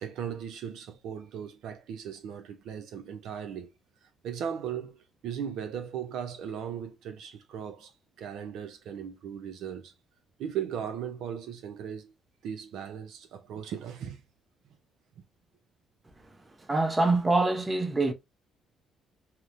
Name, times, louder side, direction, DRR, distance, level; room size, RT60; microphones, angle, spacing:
voice 1, 0.0-3.7 4.0-7.9 8.2-9.9 10.4-12.1 12.4-14.2, right 8 dB, 75° right, 0.4 m, -37 dB
voice 2, 16.6-18.1, right 2 dB, 25° right, 0.6 m, -25 dB
2.8 x 2.0 x 2.4 m
supercardioid pair, 70°, 0 cm